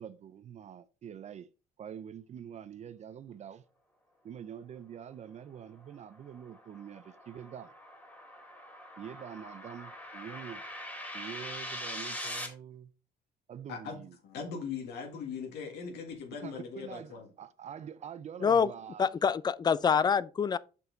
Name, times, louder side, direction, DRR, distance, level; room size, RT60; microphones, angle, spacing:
voice 1, 0.0-1.5 1.8-3.6 4.2-7.7 9.0-10.6 11.1-12.9 13.5-14.2 16.3-19.1, right 8 dB, 40° right, 0.5 m, -45 dB
sound 1, 5.6-12.5, left 1 dB, 10° left, 2.3 m, -43 dB
voice 2, 14.2-17.3, left 6 dB, 75° left, 1.8 m, -40 dB
voice 3, 19.0-20.6, left 6 dB, 25° left, 0.4 m, -26 dB
6.3 x 5.6 x 3.8 m
cardioid pair, 110°, 17 cm